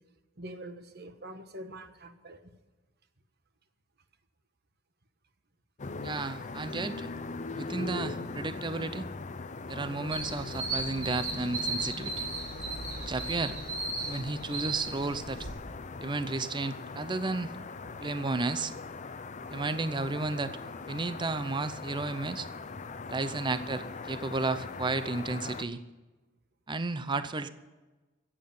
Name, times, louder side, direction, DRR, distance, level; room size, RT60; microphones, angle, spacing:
voice 1, 0.4-2.4, right 1 dB, 55° right, 9 dB, 1.2 m, -44 dB
sound 1, 5.8-25.6, left 3 dB, 40° left, 0.7 m, -41 dB
voice 2, 6.0-7.1 7.5-9.1 9.7-12.3 13.1-13.6 14.0-15.5 16.0-17.5 18.0-18.7 19.5-20.5 20.9-22.5 23.1-25.8 26.7-27.5, right 3 dB, 25° right, 12 dB, 0.6 m, -33 dB
sound 2, 10.1-15.5, right 3 dB, 90° right, 6.0 m, -36 dB
14.5 x 8.8 x 9.4 m, 1.2 s
head